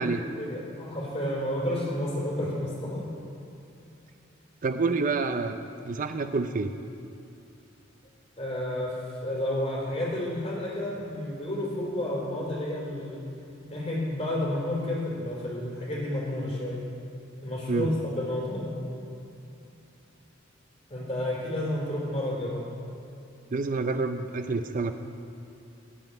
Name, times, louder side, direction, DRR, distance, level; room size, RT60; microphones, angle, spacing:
voice 1, 0.4-3.1 8.4-13.2 13.7-16.8 17.4-18.8 20.9-22.7, left 1 dB, 35° left, -4 dB, 3.6 m, -31 dB
voice 2, 4.6-5.6 5.8-6.7 17.7-17.9 23.5-24.9, right 3 dB, 45° right, 8 dB, 0.5 m, -28 dB
16.0 x 5.5 x 9.5 m, 2.7 s
head